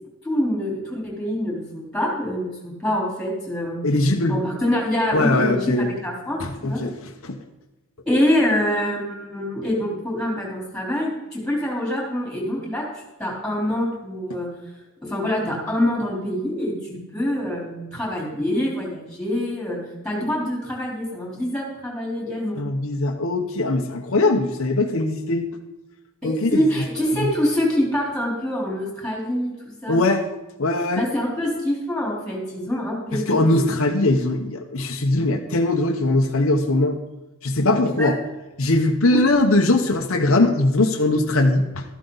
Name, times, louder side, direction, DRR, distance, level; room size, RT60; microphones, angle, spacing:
voice 1, 0.2-3.8 4.3-6.8 8.1-12.9 13.2-14.5 15.0-22.6 26.2-30.0 31.0-33.6 38.0-38.1 39.1-39.2, left 1 dB, 5° left, -2 dB, 3.8 m, -25 dB
voice 2, 3.8-4.4 5.1-5.9 6.4-6.9 7.2-7.4 22.6-25.5 26.2-26.6 27.2-27.3 29.9-30.3 30.6-31.0 33.3-37.0 37.4-38.2 38.6-41.8, left 2 dB, 70° left, 3 dB, 1.0 m, -20 dB
13.5 x 11.5 x 4.0 m, 1.1 s
head